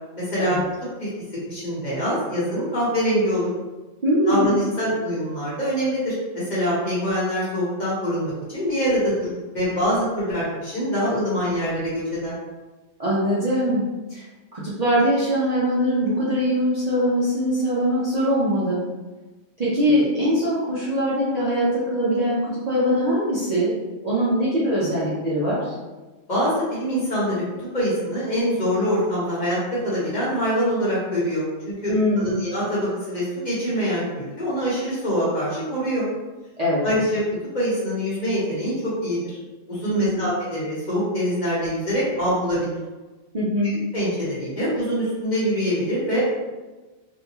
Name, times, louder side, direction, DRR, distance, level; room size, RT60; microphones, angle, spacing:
voice 1, 0.1-0.6 1.0-1.1 1.5-3.5 4.2-12.4 26.3-27.4 27.7-36.1 36.8-37.2 37.5-39.4 39.7-42.8 43.9-46.2, equal, 40° left, -8 dB, 1.1 m, -24 dB
voice 2, 4.0-4.6 13.0-13.8 14.1-14.2 14.5-18.8 19.6-23.7 24.0-25.7 31.9-32.4 36.6-36.9 39.9-40.3 43.3-43.7, equal, 45° right, -9 dB, 0.6 m, -22 dB
2.6 x 2.2 x 2.8 m, 1.2 s
omnidirectional pair, 1.2 m